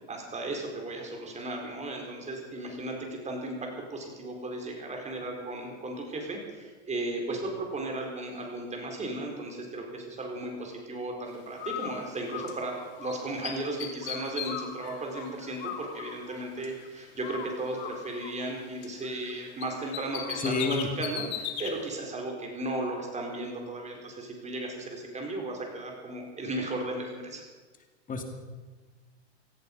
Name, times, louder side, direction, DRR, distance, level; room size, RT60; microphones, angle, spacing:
voice 1, 0.1-27.4, right 2 dB, 20° right, 1 dB, 4.6 m, -35 dB
Bird, 11.6-13.1 13.4-16.9 17.2-19.3 19.6-21.7, left 9 dB, 65° left, 2.7 m, -38 dB
voice 2, 20.4-20.9 28.1-28.2, left 4 dB, 25° left, 5 dB, 2.4 m, -29 dB
18.0 x 14.0 x 5.5 m, 1.3 s
hypercardioid pair, 110°, 34 cm